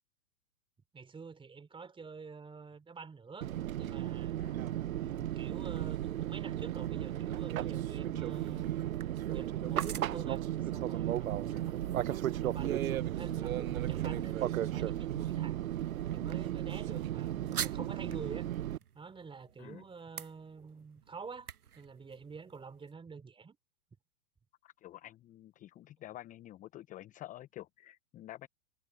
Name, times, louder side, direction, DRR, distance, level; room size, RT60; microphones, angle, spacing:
voice 1, 0.9-3.5 3.8-4.4 4.9-8.7 9.3-11.8 12.1-15.9 16.1-18.5 18.9-23.6, right 5 dB, 10° right, 3.7 m, -48 dB
Fixed-wing aircraft airplane, 3.4-18.8, right 12 dB, 65° right, 1.1 m, -35 dB
sound 1, 5.1-22.9, right 9 dB, 80° right, 1.2 m, -48 dB
voice 2, 24.6-28.5, left 14 dB, 15° left, 0.8 m, -49 dB
hypercardioid pair, 115°, 45 cm